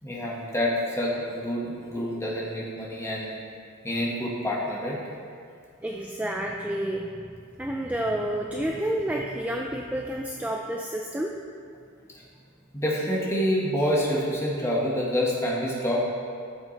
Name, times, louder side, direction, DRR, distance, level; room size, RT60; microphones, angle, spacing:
voice 1, 0.0-3.3 3.8-5.0 12.7-16.0, equal, 10° left, -4 dB, 1.5 m, -27 dB
voice 2, 5.8-7.3 7.6-11.3, right 1 dB, 5° right, 0 dB, 0.4 m, -30 dB
13.5 x 7.0 x 3.3 m, 2.3 s
head